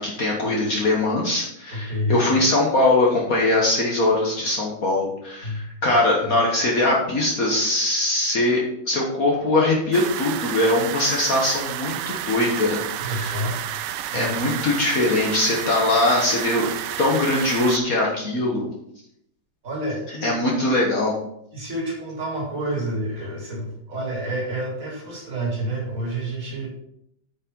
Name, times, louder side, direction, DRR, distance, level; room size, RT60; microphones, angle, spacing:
voice 1, 0.0-13.4 14.1-16.7 17.0-18.7 20.2-21.1, left 2 dB, 50° left, -2 dB, 1.7 m, -21 dB
voice 2, 1.7-2.2 5.4-5.7 13.0-13.6 14.1-14.5 19.6-20.3 21.5-26.7, right 1 dB, 45° right, -3 dB, 3.4 m, -28 dB
sound 1, 9.9-17.8, right 11 dB, 75° right, 1.1 m, -31 dB
8.6 x 5.5 x 5.3 m, 0.75 s
omnidirectional pair, 2.0 m